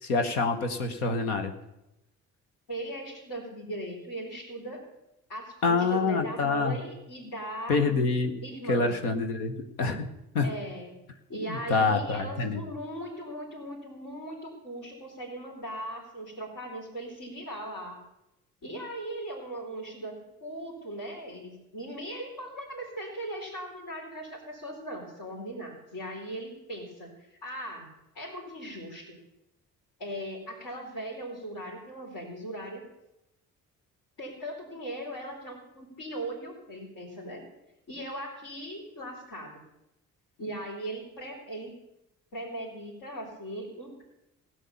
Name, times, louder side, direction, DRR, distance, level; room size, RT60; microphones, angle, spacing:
voice 1, 0.0-1.5 5.6-6.8 7.7-8.3 8.7-9.5 9.8-10.1 10.3-10.5 11.5-12.6, left 4 dB, 85° left, 6 dB, 1.1 m, -26 dB
voice 2, 2.7-4.8 5.3-7.8 8.4-9.0 10.4-10.9 11.3-18.0 18.6-20.1 20.4-27.9 28.1-29.2 30.0-32.8 34.2-37.4 37.9-39.6 40.4-41.7 42.3-44.0, right 1 dB, 60° left, -5 dB, 4.2 m, -39 dB
16.5 x 10.0 x 7.0 m, 0.90 s
hypercardioid pair, 45°, 43 cm